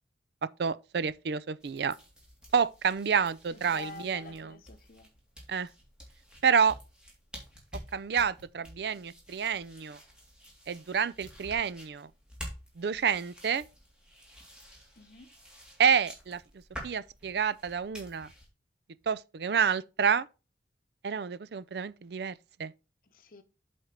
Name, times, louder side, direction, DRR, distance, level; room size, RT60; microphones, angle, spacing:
voice 1, 0.6-2.0 2.5-4.5 5.5-5.7 6.4-6.8 7.9-10.0 10.7-12.1 12.8-13.7 15.8-16.4 16.8-18.3 19.1-20.3 21.0-22.3 22.6-22.7, right 6 dB, 65° right, 0.4 m, -28 dB
sound 1, 1.6-18.5, equal, 5° right, 2.3 m, -50 dB
voice 2, 3.5-5.1 14.9-15.3 23.1-23.4, left 4 dB, 50° left, 0.9 m, -48 dB
7.9 x 4.4 x 5.0 m
head